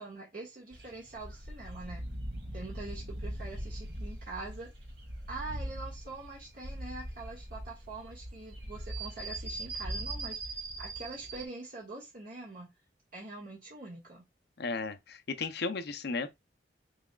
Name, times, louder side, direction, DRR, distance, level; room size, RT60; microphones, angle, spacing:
voice 1, 0.0-2.1 2.5-4.7 5.3-10.4 10.8-12.7 13.1-14.3, right 3 dB, 55° right, 1.8 m, -44 dB
sound 1, 0.7-11.5, right 1 dB, 70° right, 2.9 m, -41 dB
voice 2, 14.6-16.3, left 4 dB, 65° left, 0.7 m, -34 dB
6.0 x 3.4 x 2.4 m
head